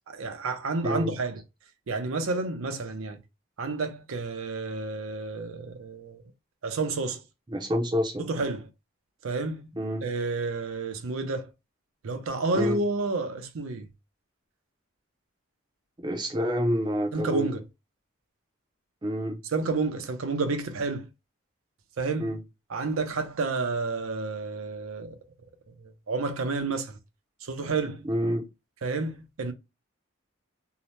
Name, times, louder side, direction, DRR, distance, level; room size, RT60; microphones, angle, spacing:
voice 1, 0.1-1.4 1.9-3.2 3.6-6.2 6.6-7.2 8.2-8.7 9.2-9.6 10.0-11.5 12.0-13.9 17.1-17.6 19.5-21.1 22.0-22.3 22.7-25.2 26.1-27.0 27.4-28.1 28.8-29.5, right 3 dB, 80° right, 0.5 m, -30 dB
voice 2, 0.8-1.1 7.5-8.3 9.8-10.1 12.5-12.8 16.0-17.5 19.0-19.4 22.2-22.4 28.0-28.5, equal, 20° right, 0.5 m, -28 dB
2.8 x 2.0 x 3.0 m
head